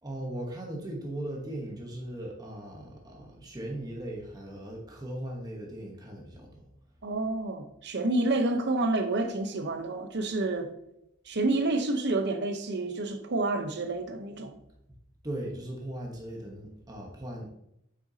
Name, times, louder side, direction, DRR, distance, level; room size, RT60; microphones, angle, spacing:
voice 1, 0.0-6.7 15.2-17.6, right 1 dB, 20° right, 1.1 m, -38 dB
voice 2, 7.0-10.7 11.3-14.6, right 2 dB, 55° right, 0.8 m, -29 dB
8.0 x 5.8 x 2.8 m
head